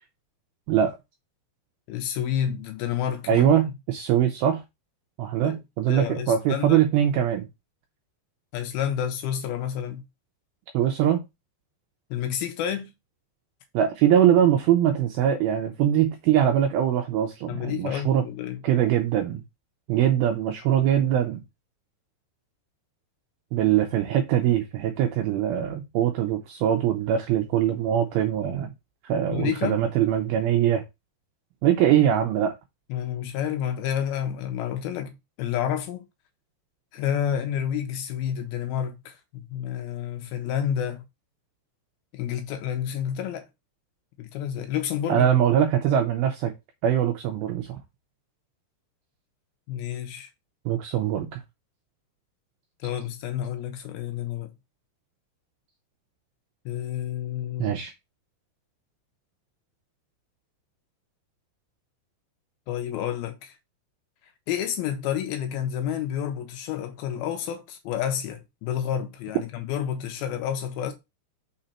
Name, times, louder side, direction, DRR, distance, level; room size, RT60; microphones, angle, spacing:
voice 1, 1.9-3.6 5.4-5.6 5.9-6.8 8.5-10.0 12.1-12.9 17.5-18.6 29.3-29.8 32.9-36.0 36.9-41.0 42.1-43.5 44.2-45.3 49.7-50.3 52.8-54.5 56.7-57.7 62.7-63.5 64.5-70.9, left 9 dB, 80° left, 2.3 m, -29 dB
voice 2, 3.3-4.6 5.2-7.5 10.7-11.2 13.7-18.2 18.6-19.4 19.9-21.4 23.5-28.7 29.0-30.8 31.6-32.5 45.1-46.5 46.8-47.8 50.7-51.4 57.6-57.9, right 10 dB, 80° right, 2.2 m, -22 dB
5.9 x 3.9 x 4.3 m
omnidirectional pair, 5.0 m